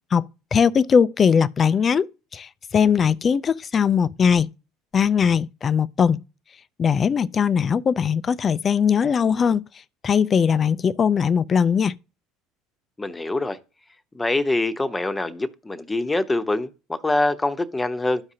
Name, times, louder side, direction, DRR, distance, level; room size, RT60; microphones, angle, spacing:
voice 1, 0.1-2.1 2.3-4.5 4.9-6.2 6.8-9.6 10.0-11.9, left 7 dB, 35° left, 0.4 m, -20 dB
voice 2, 13.0-13.6 14.1-18.2, left 2 dB, 15° left, 0.9 m, -24 dB
13.0 x 4.9 x 2.8 m
hypercardioid pair, 80°, 0 cm